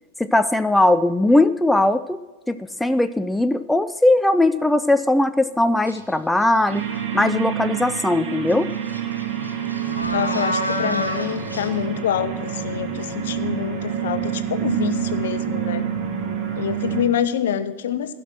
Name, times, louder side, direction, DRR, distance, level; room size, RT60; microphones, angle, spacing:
voice 1, 0.2-2.2 2.5-6.8 7.1-8.7, left 1 dB, 5° left, 11 dB, 0.4 m, -19 dB
sound 1, 5.9-6.1 6.6-7.2 8.5-8.6 8.9-11.7, equal, 90° left, 1.4 m, -29 dB
sound 2, 6.7-17.0, right 9 dB, 40° right, 2.0 m, -27 dB
voice 2, 10.1-15.8 16.5-18.1, left 9 dB, 60° left, 12 dB, 0.8 m, -26 dB
15.5 x 6.1 x 6.0 m, 1.2 s
figure-of-eight pair, 90°, 0 cm